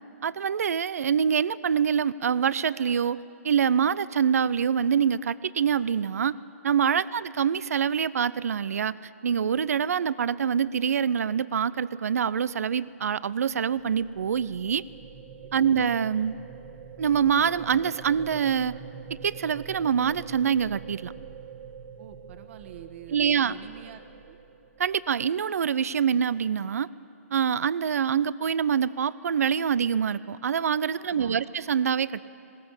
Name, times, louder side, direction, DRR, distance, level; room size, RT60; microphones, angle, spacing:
voice 1, 0.2-3.2 3.4-6.4 6.6-8.9 9.2-14.8 15.5-16.4 17.0-18.8 19.2-21.1 23.1-23.5 24.8-26.9 27.3-32.3, right 7 dB, 80° right, 19 dB, 0.5 m, -25 dB
sound 1, 13.3-25.3, right 6 dB, 35° right, 1.4 m, -45 dB
voice 2, 22.0-24.4 30.9-31.4, right 10 dB, 55° right, 8 dB, 1.5 m, -46 dB
19.5 x 18.0 x 8.8 m, 2.7 s
hypercardioid pair, 135°, 8 cm